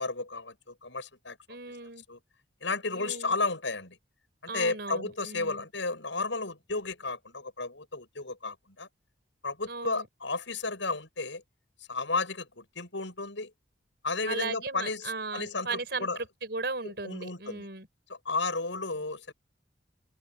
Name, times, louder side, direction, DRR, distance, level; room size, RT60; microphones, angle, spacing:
voice 1, 0.0-1.4 2.1-2.2 2.6-4.0 4.4-8.9 9.4-11.4 11.9-13.5 14.0-16.2 16.8-17.7 18.1-19.3, left 3 dB, 85° left, 7.5 m, -33 dB
voice 2, 1.5-2.0 2.9-3.3 4.5-5.6 9.7-10.1 14.3-17.9, right 3 dB, 60° right, 6.5 m, -37 dB
open air
head